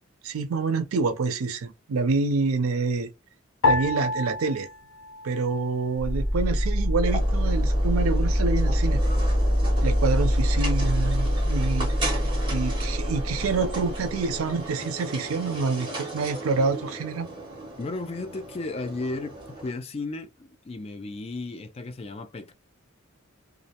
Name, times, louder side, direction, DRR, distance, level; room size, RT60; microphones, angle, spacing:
voice 1, 0.2-3.1 3.6-4.7 5.2-9.0 9.8-11.9 12.5-17.3, right 4 dB, 85° right, 0.4 m, -27 dB
sound 1, 3.6-6.2 6.4-7.3 7.9-8.4, left 3 dB, 75° left, 0.6 m, -29 dB
sound 2, 6.0-14.7, equal, ahead, 1.1 m, -24 dB
sound 3, 7.1-19.7, right 1 dB, 25° right, 1.0 m, -36 dB
voice 2, 17.8-22.5, left 3 dB, 30° left, 0.3 m, -34 dB
2.4 x 2.0 x 2.7 m
head